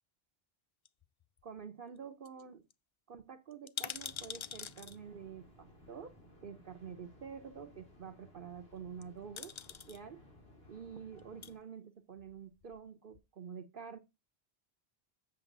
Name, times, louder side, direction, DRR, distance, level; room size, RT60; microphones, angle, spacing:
sound 1, 0.9-1.6 2.0-2.1 2.2-2.4 2.7-2.8 3.5-5.0 6.1-6.2 8.8-9.0 9.4-10.0 11.1-11.5 12.2-12.9 13.1-13.2, left 7 dB, 55° left, 0.3 m, -44 dB
voice 1, 1.4-2.6 3.1-6.1 6.4-9.5 9.9-10.2 10.7-14.0, right 7 dB, 55° right, 0.9 m, -48 dB
sound 2, 3.9-11.6, left 1 dB, 70° left, 2.9 m, -60 dB
7.7 x 6.7 x 3.8 m
omnidirectional pair, 1.1 m